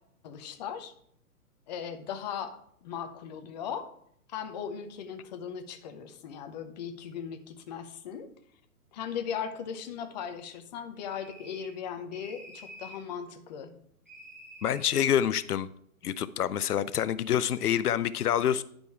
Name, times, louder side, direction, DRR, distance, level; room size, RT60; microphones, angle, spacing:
voice 1, 0.2-0.9 1.7-3.9 4.3-8.3 8.9-13.8, left 7 dB, 30° left, 7 dB, 0.8 m, -38 dB
sound 1, 11.0-11.8 12.1-13.1 14.1-15.1, right 1 dB, 10° right, 0.4 m, -49 dB
voice 2, 14.6-15.7 16.0-18.6, left 10 dB, 80° left, 14 dB, 0.6 m, -27 dB
10.5 x 5.3 x 4.6 m, 0.66 s
hypercardioid pair, 145°, 45 cm